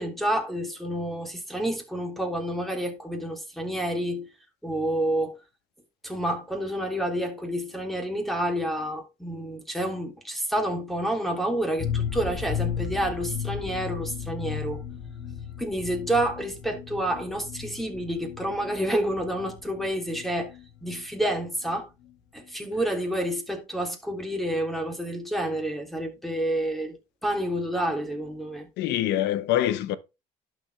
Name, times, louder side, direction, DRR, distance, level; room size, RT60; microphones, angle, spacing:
voice 1, 0.0-4.3 4.6-5.4 6.0-14.8 15.6-20.5 20.8-21.9 22.3-28.7, right 1 dB, ahead, 3.2 m, -29 dB
sound 1, 11.8-21.4 21.7-21.8 22.0-22.1, left 8 dB, 70° left, 2.0 m, -35 dB
voice 2, 28.8-30.0, left 12 dB, 85° left, 1.0 m, -25 dB
11.5 x 7.3 x 3.4 m
cardioid pair, 110°, 17 cm